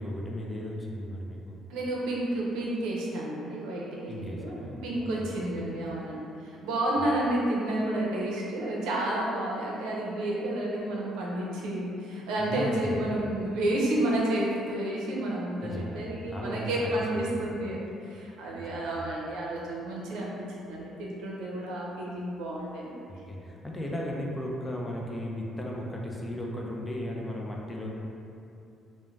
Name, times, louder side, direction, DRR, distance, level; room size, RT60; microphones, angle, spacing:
voice 1, 0.0-1.6 4.1-5.3 12.4-13.0 15.6-16.0 16.3-16.9 17.3-17.4 18.6-18.9 23.1-27.9, left 1 dB, 15° left, -2 dB, 0.3 m, -36 dB
voice 2, 1.7-22.9, right 1 dB, 90° right, -4 dB, 0.5 m, -31 dB
2.4 x 2.1 x 3.1 m, 2.6 s
cardioid pair, 120°, 0 cm